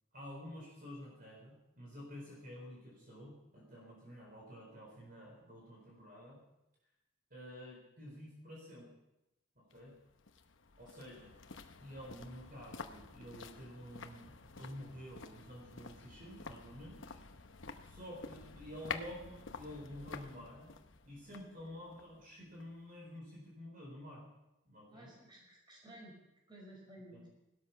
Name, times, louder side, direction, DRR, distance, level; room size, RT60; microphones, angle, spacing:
voice 1, 0.1-6.4 7.3-8.9 9.6-9.9 10.8-11.3 11.8-17.2 17.8-20.7 21.0-24.2 24.6-25.1 27.1-27.2, equal, 45° right, -2 dB, 4.2 m, -50 dB
sound 1, 9.7-22.9 23.2-23.3, left 4 dB, 65° left, 0.9 m, -50 dB
voice 2, 24.9-26.2 26.5-27.3, right 1 dB, 20° right, -1 dB, 5.1 m, -54 dB
18.0 x 12.5 x 5.8 m, 0.93 s
head